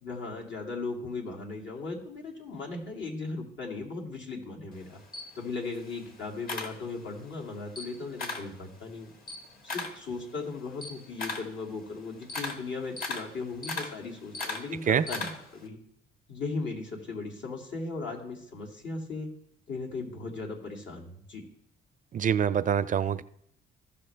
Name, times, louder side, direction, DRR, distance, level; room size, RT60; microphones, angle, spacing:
voice 1, 0.0-5.0 5.4-9.1 9.6-15.8 16.3-19.3 19.7-21.4, left 3 dB, 70° left, -1 dB, 2.3 m, -37 dB
Camera, 4.7-7.3 7.6-8.6 8.9-15.6, left 3 dB, 45° left, 1.6 m, -38 dB
voice 2, 22.1-23.2, right 8 dB, 40° right, 14 dB, 0.4 m, -25 dB
15.0 x 6.0 x 3.3 m, 0.72 s
cardioid pair, 90°, 20 cm